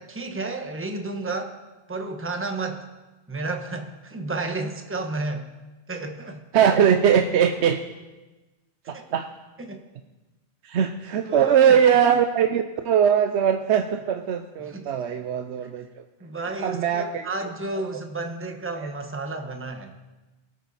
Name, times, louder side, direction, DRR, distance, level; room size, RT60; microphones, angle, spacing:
voice 1, 0.0-1.5 1.9-2.9 3.3-5.5 5.9-6.4 8.9-9.0 9.6-9.8 11.2-11.8 14.6-15.1 15.6-15.7 16.2-19.9, right 2 dB, 10° right, 4 dB, 1.0 m, -32 dB
voice 2, 6.5-7.8 8.9-9.3 10.6-16.0 16.6-17.3 18.8-18.9, right 8 dB, 80° right, 7 dB, 0.9 m, -21 dB
23.0 x 8.5 x 4.1 m, 1.1 s
omnidirectional pair, 1.1 m